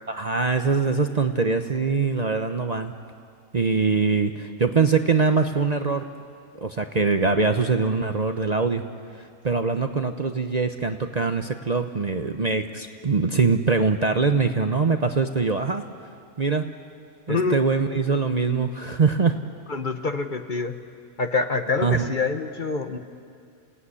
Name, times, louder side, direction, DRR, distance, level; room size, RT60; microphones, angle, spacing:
voice 1, 0.1-2.9 3.5-6.1 6.6-8.8 9.2-15.9 16.4-16.7 17.3-19.4 21.8-22.1, right 4 dB, 35° right, 7 dB, 0.8 m, -23 dB
voice 2, 19.7-20.8 21.2-23.0, left 4 dB, 40° left, 8 dB, 1.2 m, -26 dB
28.0 x 17.0 x 9.8 m, 2.3 s
omnidirectional pair, 1.3 m